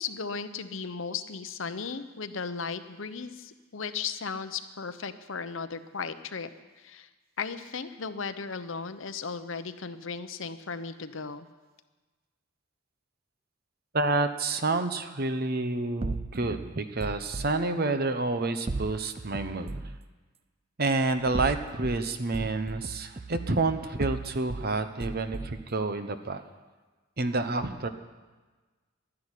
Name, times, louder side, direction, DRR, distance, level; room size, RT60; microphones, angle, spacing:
voice 1, 0.0-6.5 6.8-7.1 7.4-11.5, left 5 dB, 65° left, 11 dB, 0.8 m, -36 dB
voice 2, 13.9-19.8 20.8-26.4 27.2-27.9, right 3 dB, 45° right, 9 dB, 0.9 m, -29 dB
sound 1, 16.0-17.5 18.7-20.0 21.2-22.0 22.3-24.7 25.0-25.7, right 3 dB, 30° right, 0.4 m, -36 dB
12.0 x 11.0 x 10.0 m, 1.3 s
head